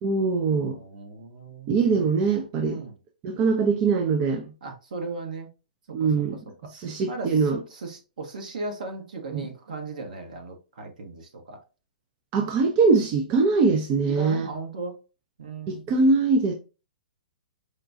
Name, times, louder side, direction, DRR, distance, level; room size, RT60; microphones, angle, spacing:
voice 1, 0.0-0.8 1.7-2.8 3.2-4.4 5.9-6.4 6.7-7.6 9.3-9.5 12.3-14.5 15.7-16.5, right 4 dB, 35° right, 0.5 m, -22 dB
voice 2, 0.5-1.7 2.6-2.9 4.6-5.5 5.9-6.1 7.1-11.6 14.1-15.0 15.4-15.8, right 3 dB, 65° right, 1.1 m, -37 dB
4.9 x 2.2 x 2.6 m
figure-of-eight pair, 115°, 5 cm